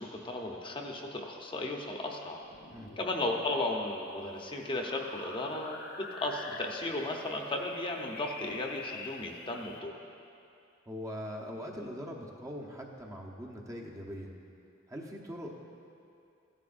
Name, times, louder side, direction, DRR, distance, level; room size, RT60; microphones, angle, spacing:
voice 1, 0.0-2.4 3.0-10.0, left 2 dB, 25° left, 1 dB, 0.8 m, -35 dB
sound 1, 2.4-9.8, left 3 dB, 60° left, 0.8 m, -47 dB
voice 2, 10.9-14.3 14.9-15.7, equal, 15° right, 0 dB, 0.9 m, -41 dB
15.0 x 11.0 x 2.5 m, 2.6 s
head